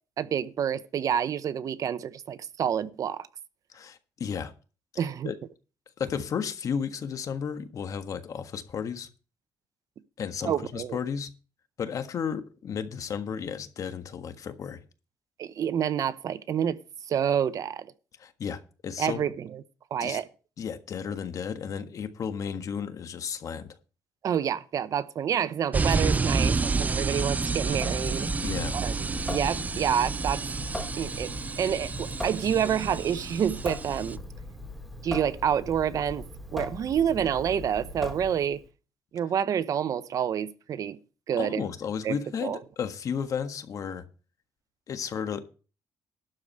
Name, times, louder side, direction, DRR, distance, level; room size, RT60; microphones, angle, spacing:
voice 1, 0.2-3.3 5.0-5.3 10.4-11.0 15.4-16.8 17.1-17.9 19.0-19.6 19.9-20.3 24.2-28.3 28.7-30.4 31.0-34.2 35.0-36.2 36.5-38.6 39.1-41.0 41.3-41.6 42.0-42.6, right 8 dB, 60° right, 0.8 m, -28 dB
voice 2, 3.7-4.5 4.9-5.4 6.0-9.1 10.2-11.3 11.8-14.8 18.2-19.2 20.0-20.2 20.6-23.7 28.4-28.8 41.4-44.0 44.9-45.4, left 7 dB, 55° left, 1.5 m, -33 dB
sound 1, 25.7-34.2, right 4 dB, 25° right, 0.5 m, -29 dB
Water tap faucet / Sink (filling or washing) / Drip, 27.7-38.7, left 1 dB, ahead, 2.9 m, -39 dB
12.0 x 4.9 x 8.1 m
cardioid pair, 95°, 7 cm